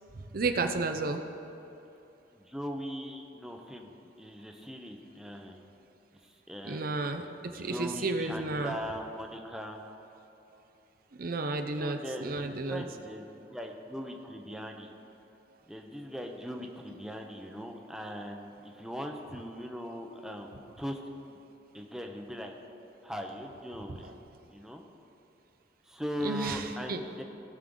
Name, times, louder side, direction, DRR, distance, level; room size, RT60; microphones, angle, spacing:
voice 1, 0.3-1.2 6.6-8.8 11.2-12.9 23.9-24.1 26.2-27.0, right 3 dB, 50° right, 6 dB, 0.6 m, -32 dB
voice 2, 2.3-3.9 4.2-5.6 6.5-6.9 7.5-9.9 11.8-14.9 15.7-21.0 21.3-21.4 21.7-22.5 23.0-24.1 24.5-24.8 25.9-27.2, equal, 5° right, 2 dB, 0.7 m, -40 dB
18.5 x 6.5 x 3.8 m, 3.0 s
head